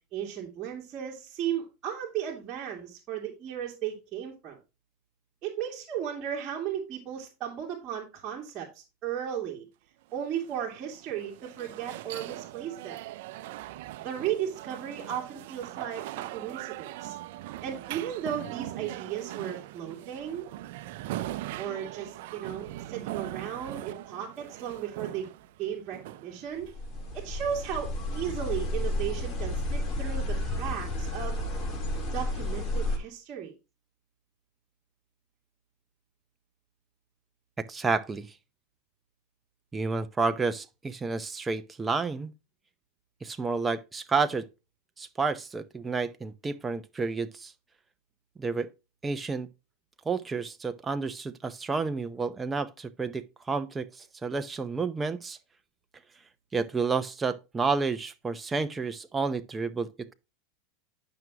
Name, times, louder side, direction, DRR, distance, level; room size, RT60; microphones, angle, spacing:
voice 1, 0.1-4.6 5.4-9.7 10.1-13.0 14.0-17.2 17.6-20.4 21.6-25.3 25.6-26.7 27.1-31.4 32.1-33.5, right 9 dB, 35° right, 2.5 m, -35 dB
sound 1, 10.1-27.1, right 15 dB, 70° right, 0.5 m, -41 dB
sound 2, 26.6-33.0, left 1 dB, 25° left, 3.4 m, -31 dB
voice 2, 37.6-38.3 39.7-42.3 43.2-44.5 45.0-47.5 48.4-48.7 49.0-49.5 50.1-55.4 56.5-60.1, right 4 dB, 15° right, 0.7 m, -30 dB
10.5 x 6.1 x 2.9 m
supercardioid pair, 120°, 0 cm